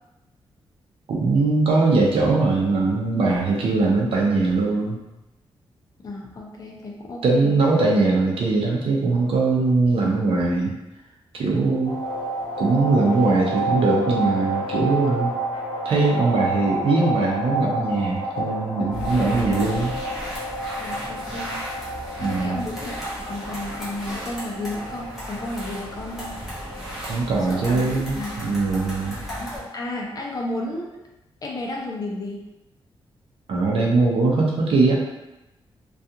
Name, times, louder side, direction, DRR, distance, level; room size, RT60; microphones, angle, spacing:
voice 1, 1.1-5.0 7.2-10.7 11.3-12.0 12.6-15.4 15.8-20.0 22.2-22.6 27.1-29.2 33.5-35.0, right 3 dB, 75° right, -2 dB, 0.6 m, -21 dB
voice 2, 6.0-7.6 20.8-21.6 22.2-26.3 27.5-27.8 28.1-28.4 29.3-31.0 31.4-32.5, left 2 dB, 40° left, -1 dB, 0.5 m, -32 dB
sound 1, 11.8-30.4, right 1 dB, 75° left, 0.7 m, -31 dB
sound 2, 18.9-29.6, equal, 5° right, 0.8 m, -35 dB
2.4 x 2.3 x 2.7 m, 0.98 s
wide cardioid pair, 170°, 10 cm